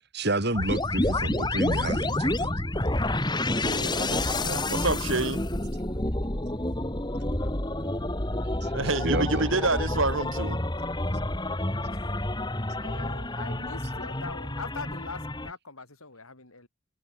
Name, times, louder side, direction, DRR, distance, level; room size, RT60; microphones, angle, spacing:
voice 1, 0.1-2.5 8.6-8.7 9.0-9.5, right 1 dB, 50° right, 5.0 m, -29 dB
Power Up, 0.5-15.5, left 1 dB, 20° left, 2.1 m, -29 dB
voice 2, 3.6-5.4 8.7-10.6, right 3 dB, 65° right, 3.2 m, -28 dB
voice 3, 7.4-8.2 11.9-12.1 12.8-16.7, left 3 dB, 85° left, 5.6 m, -43 dB
head